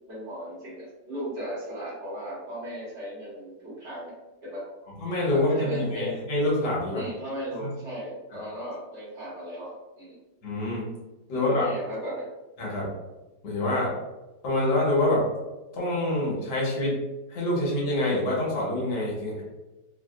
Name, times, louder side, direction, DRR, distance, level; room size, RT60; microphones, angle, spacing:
voice 1, 0.1-4.1 4.4-4.6 5.3-6.1 6.9-10.2 11.3-12.2, equal, 45° right, -9 dB, 1.6 m, -36 dB
voice 2, 5.0-7.0 7.6-7.7 10.4-10.9 11.3-11.6 12.6-12.9 13.4-13.9 14.4-15.2 15.7-17.0 17.3-19.4, left 1 dB, 80° left, -5 dB, 1.7 m, -26 dB
4.0 x 2.4 x 2.4 m, 1.1 s
omnidirectional pair, 1.8 m